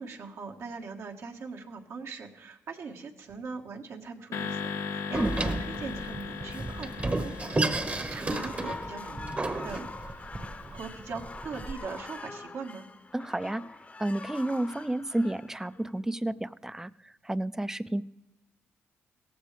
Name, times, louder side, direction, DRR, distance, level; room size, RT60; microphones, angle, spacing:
voice 1, 0.0-9.8 10.7-12.9, right 5 dB, 75° right, 2 dB, 1.6 m, -41 dB
sound 1, 4.3-10.7, left 5 dB, 85° left, 0.8 m, -39 dB
Door, 5.1-11.7, right 2 dB, 30° right, 1.0 m, -32 dB
sound 2, 8.1-16.2, left 3 dB, 30° left, 0.8 m, -44 dB
voice 2, 13.1-13.6 14.0-16.9 17.2-18.0, right 1 dB, 10° right, 15 dB, 0.4 m, -31 dB
17.0 x 15.0 x 3.4 m, 0.95 s
cardioid pair, 85°, 5 cm